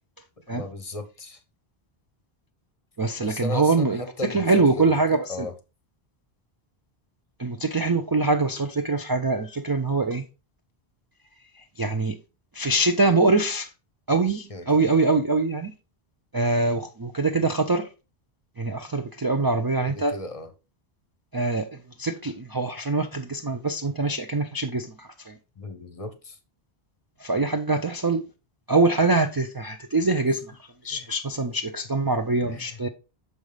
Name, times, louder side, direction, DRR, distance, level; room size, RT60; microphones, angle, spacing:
voice 1, 0.5-1.4 3.2-4.4 4.7-4.9 5.3-5.5 14.5-14.6 19.9-20.5 25.6-26.4 30.9-31.1 32.5-32.8, left 2 dB, 40° left, 0.8 m, -36 dB
voice 2, 3.0-5.5 7.4-10.2 11.8-12.2 12.5-13.7 14.1-15.7 16.3-17.9 18.6-20.1 21.3-21.7 22.0-25.3 27.2-28.2 28.7-30.5 30.8-32.9, right 3 dB, 35° right, 0.4 m, -24 dB
6.2 x 5.4 x 3.3 m
omnidirectional pair, 1.0 m